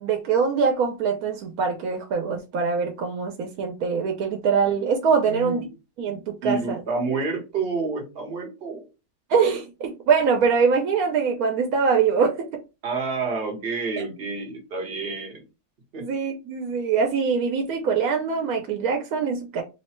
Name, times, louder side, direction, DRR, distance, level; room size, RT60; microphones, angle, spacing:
voice 1, 0.0-5.7 6.0-7.0 9.3-12.5 16.0-19.6, right 5 dB, 90° right, 1.1 m, -23 dB
voice 2, 5.3-5.6 6.4-8.9 12.8-15.4 15.9-16.1, right 4 dB, 45° right, 1.1 m, -29 dB
3.2 x 2.1 x 4.2 m
omnidirectional pair, 1.5 m